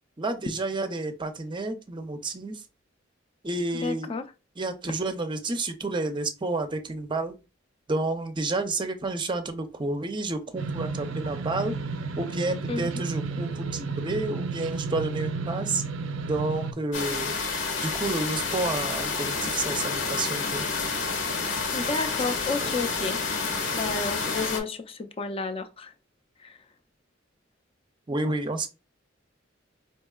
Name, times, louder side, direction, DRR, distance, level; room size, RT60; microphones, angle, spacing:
voice 1, 0.2-2.6 3.4-4.1 4.6-7.4 7.9-11.7 12.1-15.8 16.3-17.3 17.8-20.7 22.6-22.7 28.1-28.7, right 2 dB, 25° right, 0.5 m, -30 dB
voice 2, 3.8-4.2 12.7-12.9 21.7-23.2 23.7-25.9 26.4-26.5, left 3 dB, 30° left, 0.4 m, -31 dB
sound 1, 10.6-16.7, right 4 dB, 80° right, 0.4 m, -32 dB
sound 2, 16.9-24.6, left 4 dB, 85° left, 1.2 m, -29 dB
4.6 x 2.8 x 2.3 m
head